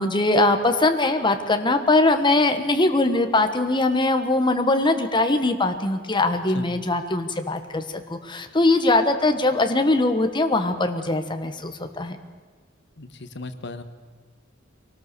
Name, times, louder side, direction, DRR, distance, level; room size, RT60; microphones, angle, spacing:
voice 1, 0.0-12.2, left 2 dB, 25° left, 6 dB, 1.3 m, -21 dB
voice 2, 13.0-13.8, left 3 dB, 60° left, 10 dB, 1.3 m, -36 dB
23.5 x 18.5 x 6.9 m, 1.4 s
head